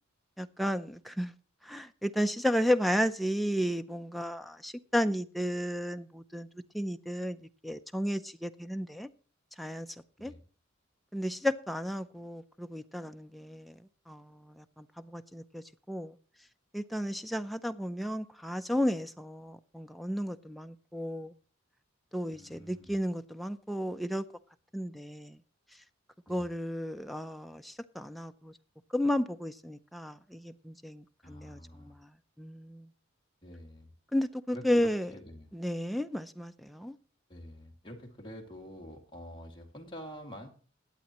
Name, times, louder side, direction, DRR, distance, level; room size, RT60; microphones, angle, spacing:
voice 1, 0.4-1.3 1.7-6.5 6.7-7.4 7.6-9.1 9.6-9.9 10.2-10.3 11.1-13.8 14.1-16.1 16.7-21.3 22.1-24.2 24.7-25.4 26.3-28.5 28.9-32.1 32.4-32.9 34.1-35.1 35.5-36.9, equal, ahead, 0.5 m, -33 dB
voice 2, 22.3-22.9 26.3-26.5 31.2-32.0 33.4-33.9 34.5-35.5 37.3-40.5, equal, 25° left, 2.2 m, -47 dB
21.0 x 8.2 x 3.0 m
head